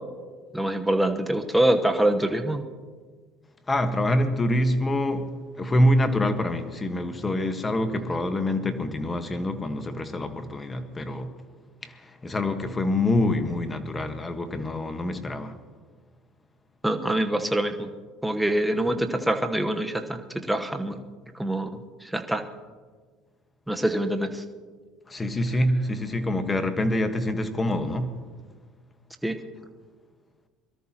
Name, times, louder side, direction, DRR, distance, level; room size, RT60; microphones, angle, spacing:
voice 1, 0.5-2.6 16.8-17.9 18.2-20.2 20.5-21.0 21.4-21.7 22.1-22.4 23.7-24.4 29.2-29.4, right 1 dB, 5° right, 1.1 m, -24 dB
voice 2, 3.7-11.3 11.8-15.5 20.9-21.0 25.1-28.2, left 1 dB, 20° left, 1.4 m, -26 dB
22.5 x 13.0 x 3.0 m
supercardioid pair, 90°, 0 cm